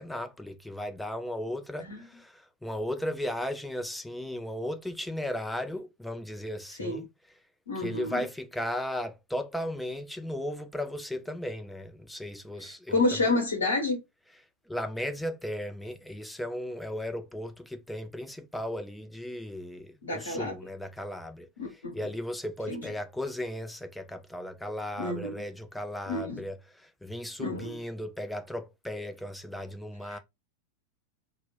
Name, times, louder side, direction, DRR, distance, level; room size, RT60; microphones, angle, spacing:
voice 1, 0.0-7.1 7.8-13.3 14.7-30.2, left 1 dB, 5° left, 0.4 m, -36 dB
voice 2, 7.7-8.2 12.9-14.0 20.0-20.5 21.6-22.0 22.7-22.8 25.0-25.4 26.1-26.4 27.4-27.8 30.1-30.2, left 2 dB, 70° left, 0.7 m, -29 dB
2.1 x 2.0 x 3.5 m
figure-of-eight pair, 90°, 0 cm